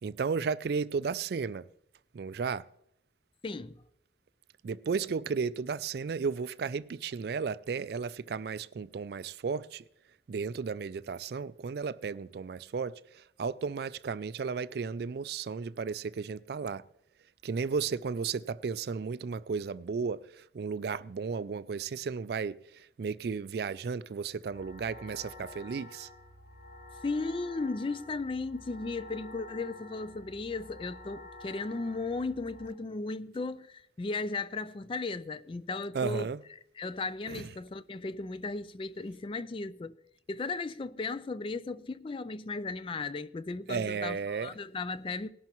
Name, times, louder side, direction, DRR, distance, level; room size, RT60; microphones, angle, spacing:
voice 1, 0.0-1.7 2.1-2.7 4.6-9.8 10.3-16.8 17.4-26.1 35.9-36.4 37.3-37.5 43.7-44.6, right 5 dB, 55° right, 0.3 m, -34 dB
voice 2, 3.4-3.8 26.9-36.3 36.8-40.0 40.3-45.3, left 3 dB, 25° left, 0.3 m, -36 dB
sound 1, 24.5-32.7, left 2 dB, 75° left, 5.5 m, -49 dB
19.0 x 11.5 x 3.0 m
head